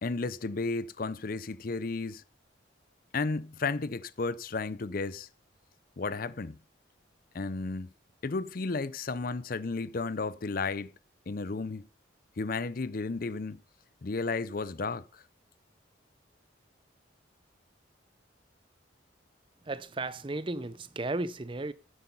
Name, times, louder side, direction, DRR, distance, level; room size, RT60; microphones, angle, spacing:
voice 1, 0.0-2.2 3.1-5.3 6.0-6.6 7.3-7.9 8.2-10.9 11.3-11.9 12.4-13.6 14.0-15.2, left 3 dB, 45° left, 0.5 m, -33 dB
voice 2, 19.6-21.7, right 2 dB, 25° right, 0.5 m, -34 dB
10.5 x 8.0 x 5.4 m
head